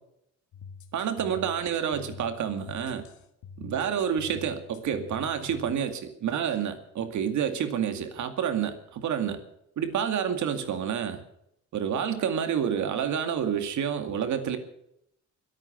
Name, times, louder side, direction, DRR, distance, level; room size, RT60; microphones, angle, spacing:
sound 1, 0.5-5.8, left 6 dB, 75° left, 2.0 m, -46 dB
voice 1, 0.9-3.0 3.6-9.4 9.8-11.2 11.7-14.6, right 8 dB, 75° right, 8 dB, 2.3 m, -29 dB
22.5 x 8.9 x 6.9 m, 0.76 s
cardioid pair, 90°, 30 cm